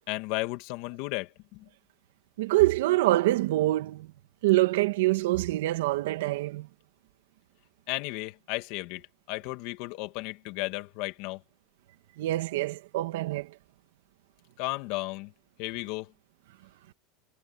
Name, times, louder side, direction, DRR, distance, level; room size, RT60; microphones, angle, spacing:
voice 1, 0.1-1.6 7.9-11.4 14.6-15.3 15.6-16.1, left 22 dB, 55° left, 2.5 m, -34 dB
voice 2, 2.4-4.1 4.4-6.7 12.2-13.5, right 17 dB, 85° right, 2.6 m, -25 dB
supercardioid pair, 150°, 0 cm